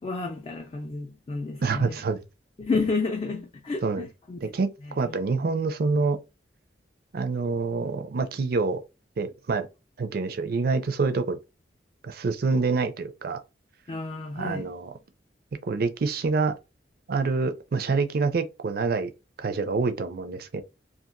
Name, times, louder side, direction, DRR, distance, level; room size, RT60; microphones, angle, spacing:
voice 1, 0.0-2.0 2.6-4.5 4.8-5.1 13.9-14.7, left 3 dB, 30° left, 0.4 m, -31 dB
voice 2, 1.6-2.2 3.8-4.1 4.4-4.7 4.9-6.2 7.1-8.8 9.2-9.7 10.0-11.4 12.0-13.4 14.4-14.9 15.7-16.5 17.1-19.1 19.4-20.6, right 4 dB, 55° right, 0.4 m, -26 dB
2.7 x 2.4 x 2.5 m
head